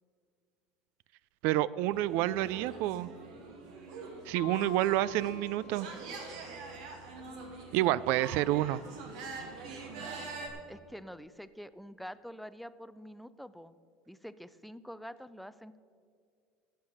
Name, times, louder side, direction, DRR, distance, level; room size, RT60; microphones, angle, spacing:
voice 1, 1.4-3.1 4.2-5.9 7.7-8.8, right 15 dB, 65° right, 19 dB, 0.3 m, -29 dB
sound 1, 1.9-10.5, right 4 dB, 85° right, 2.2 m, -45 dB
Mallet percussion, 4.4-7.0, left 19 dB, 50° left, 0.7 m, -50 dB
voice 2, 10.7-13.8 14.1-15.8, equal, ahead, 14 dB, 0.4 m, -46 dB
13.0 x 8.0 x 6.4 m, 2.3 s
supercardioid pair, 110°, 4 cm